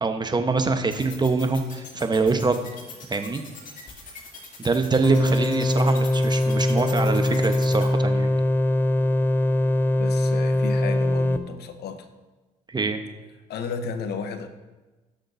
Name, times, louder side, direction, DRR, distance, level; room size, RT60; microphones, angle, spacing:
voice 1, 0.0-2.6 3.1-3.4 4.6-8.3 12.7-13.0, right 3 dB, 25° right, 7 dB, 1.1 m, -24 dB
sound 1, 0.9-7.8, left 4 dB, 45° left, 2.5 m, -41 dB
sound 2, 5.0-11.4, left 1 dB, 10° left, 0.6 m, -22 dB
voice 2, 10.0-12.1 13.5-14.5, left 5 dB, 65° left, 8 dB, 1.0 m, -33 dB
16.0 x 6.5 x 2.7 m, 1.2 s
hypercardioid pair, 55°, 18 cm